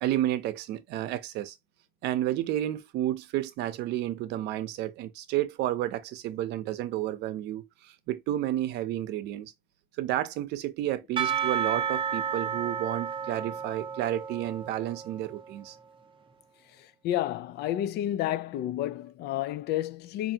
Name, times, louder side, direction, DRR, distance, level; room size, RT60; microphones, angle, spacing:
voice 1, 0.0-1.6 2.0-9.5 10.0-15.8, right 13 dB, 85° right, 0.6 m, -31 dB
Percussion / Church bell, 11.2-15.6, right 7 dB, 30° right, 0.6 m, -32 dB
voice 2, 17.0-20.3, left 13 dB, 75° left, 0.4 m, -30 dB
4.7 x 2.6 x 2.7 m
cardioid pair, 110°, 17 cm